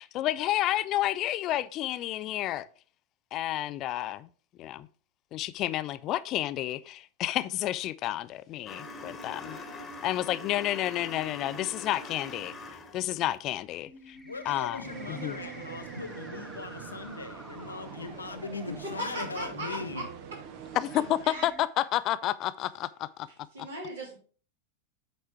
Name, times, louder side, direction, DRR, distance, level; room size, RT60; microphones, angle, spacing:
voice 1, 0.0-2.7 3.3-4.3 4.6-4.9 5.3-9.6 10.0-12.5 12.9-14.2 14.5-14.8 15.1-15.4 20.7-23.3 23.6-23.7, left 14 dB, 35° left, 0.3 m, -30 dB
sound 1, 8.7-13.1, left 3 dB, 20° left, 1.3 m, -43 dB
sound 2, 13.9-19.9 20.7-20.8 21.3-21.6, left 1 dB, ahead, 1.0 m, -49 dB
voice 2, 14.2-20.1, left 4 dB, 75° left, 0.9 m, -39 dB
sound 3, 14.8-21.2, right 8 dB, 45° right, 0.9 m, -44 dB
voice 3, 18.8-20.0 21.2-21.5 23.5-24.2, right 1 dB, 65° right, 3.1 m, -37 dB
8.2 x 4.3 x 4.4 m
figure-of-eight pair, 90°, 0 cm